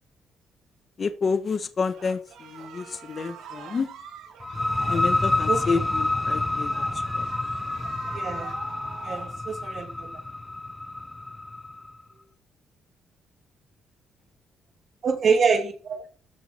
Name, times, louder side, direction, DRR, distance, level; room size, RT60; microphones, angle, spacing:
voice 1, 1.0-3.9 4.9-6.8 7.1-7.3, left 5 dB, 45° left, 10 dB, 1.3 m, -29 dB
sound 1, 1.9-9.3, right 7 dB, 80° right, 3.0 m, -43 dB
sound 2, 4.4-11.9, left 2 dB, 15° left, 0.8 m, -28 dB
voice 2, 5.5-5.8 8.1-8.5 9.0-10.1 15.0-16.1, right 5 dB, 55° right, 4 dB, 2.7 m, -25 dB
14.0 x 6.1 x 4.5 m, 0.39 s
cardioid pair, 90°, 0 cm